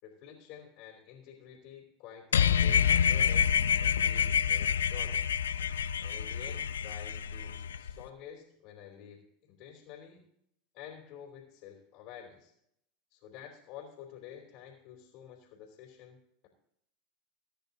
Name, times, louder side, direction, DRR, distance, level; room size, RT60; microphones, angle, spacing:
voice 1, 0.0-5.3 6.0-10.2 10.7-12.5 13.1-16.5, left 9 dB, 60° left, -1 dB, 3.2 m, -50 dB
sound 1, 2.3-7.9, left 8 dB, 90° left, 0.6 m, -27 dB
21.5 x 10.0 x 2.8 m, 0.75 s
hypercardioid pair, 90°, 0 cm